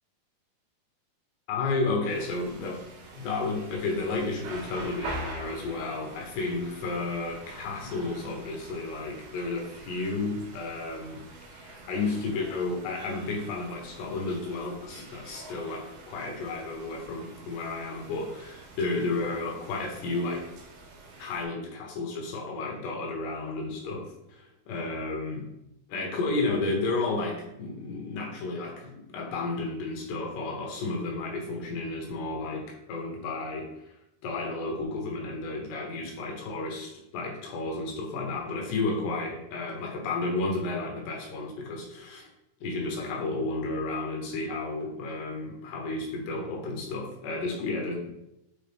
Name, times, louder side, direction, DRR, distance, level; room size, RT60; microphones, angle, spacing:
voice 1, 1.5-2.8 3.1-11.2 11.5-20.5 21.2-25.5 25.9-33.9 34.2-42.3 42.6-48.1, left 3 dB, 75° left, 1 dB, 3.0 m, -32 dB
sound 1, 2.1-21.4, right 1 dB, 85° right, 3.5 m, -45 dB
7.9 x 3.7 x 3.4 m, 0.85 s
omnidirectional pair, 5.0 m